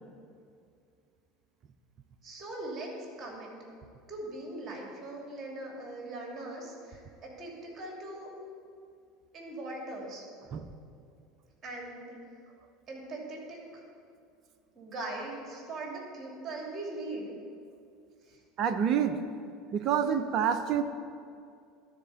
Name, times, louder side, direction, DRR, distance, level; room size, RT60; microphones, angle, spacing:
voice 1, 2.2-2.9 3.2-3.5 4.1-8.3 9.3-10.2 11.6-12.1 12.9-13.6 14.7-17.3, right 2 dB, 30° right, -1 dB, 2.8 m, -40 dB
voice 2, 18.6-19.2 19.7-20.8, right 8 dB, 45° right, 9 dB, 0.5 m, -27 dB
12.0 x 4.3 x 7.1 m, 2.4 s
figure-of-eight pair, 70°, 0 cm